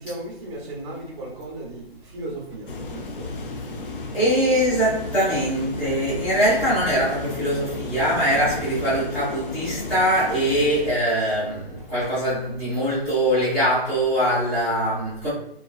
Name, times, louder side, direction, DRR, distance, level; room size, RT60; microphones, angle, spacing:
voice 1, 0.0-3.8 4.3-4.7 8.3-8.7, right 1 dB, 30° right, -3 dB, 0.7 m, -36 dB
sound 1, 2.7-11.0, left 3 dB, 60° left, 0.5 m, -34 dB
voice 2, 4.1-15.3, equal, 5° left, -12 dB, 0.5 m, -22 dB
2.4 x 2.3 x 2.3 m, 0.77 s
hypercardioid pair, 150°, 31 cm